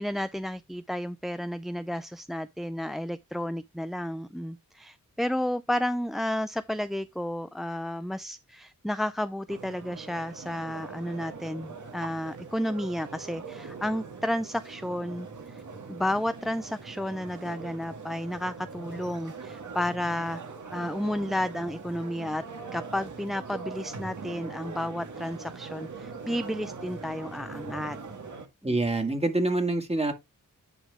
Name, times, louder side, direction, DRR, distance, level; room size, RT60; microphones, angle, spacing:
voice 1, 0.0-15.6 15.9-20.4 20.7-22.4 22.7-28.0 28.6-28.8, left 1 dB, ahead, 0.4 m, -32 dB
sound 1, 9.5-28.5, right 4 dB, 65° right, 1.9 m, -42 dB
voice 2, 28.6-30.1, right 2 dB, 20° right, 2.0 m, -26 dB
10.0 x 3.8 x 3.6 m
cardioid pair, 70°, 33 cm